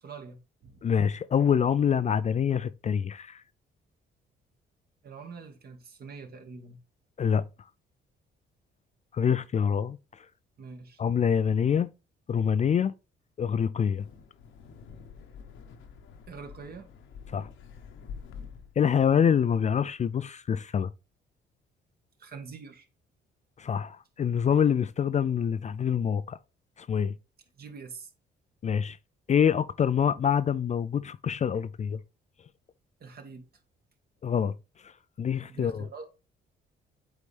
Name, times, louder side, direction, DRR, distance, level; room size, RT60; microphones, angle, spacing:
voice 1, 0.0-0.8 5.0-6.8 10.6-11.0 16.3-16.9 22.2-22.9 27.6-28.1 33.0-33.5 35.5-36.0, right 5 dB, 50° right, 1.6 m, -44 dB
voice 2, 0.8-3.4 7.2-7.4 9.1-10.0 11.0-11.9 12.3-12.9 13.4-14.0 17.3-17.5 18.8-20.9 23.6-26.4 26.9-27.1 28.6-29.0 29.3-32.0 34.2-34.5 35.2-35.8, left 7 dB, 35° left, 0.4 m, -25 dB
Wind, 13.8-18.8, left 6 dB, 80° left, 1.0 m, -47 dB
8.3 x 4.1 x 3.4 m
cardioid pair, 90°, 20 cm